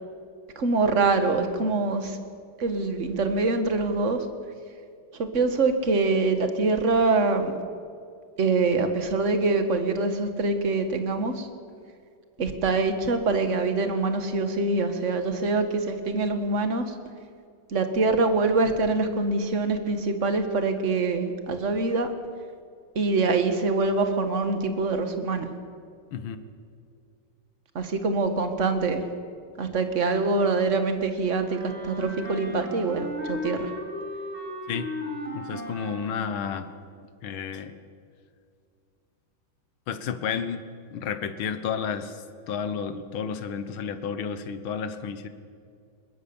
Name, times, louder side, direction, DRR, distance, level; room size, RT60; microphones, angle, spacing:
voice 1, 0.6-2.2 2.6-4.3 5.1-7.5 8.4-11.5 12.4-16.9 17.7-22.1 23.0-25.5 27.8-29.0 29.6-33.7, right 3 dB, 40° right, 7 dB, 1.8 m, -24 dB
Wind instrument woodwind instrument, 31.4-36.7, left 1 dB, 85° right, 4.7 m, -36 dB
voice 2, 35.3-36.7 37.2-37.7 39.9-40.6 40.9-45.3, left 7 dB, 75° left, 10 dB, 2.0 m, -31 dB
21.5 x 20.0 x 7.1 m, 2.3 s
omnidirectional pair, 2.3 m